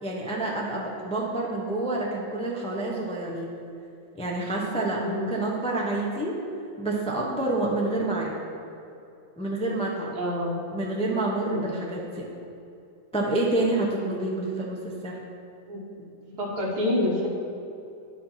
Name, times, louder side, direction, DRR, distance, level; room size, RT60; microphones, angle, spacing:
voice 1, 0.0-3.5 4.1-6.4 6.8-8.4 9.4-10.2 10.7-12.3 13.1-15.2, right 2 dB, 10° left, -2 dB, 0.3 m, -28 dB
voice 2, 5.0-5.3 10.1-10.6 11.4-11.8 14.1-14.4 15.7-16.1 16.4-17.3, left 1 dB, 55° right, -2 dB, 2.0 m, -28 dB
10.0 x 4.8 x 5.7 m, 2.7 s
omnidirectional pair, 2.2 m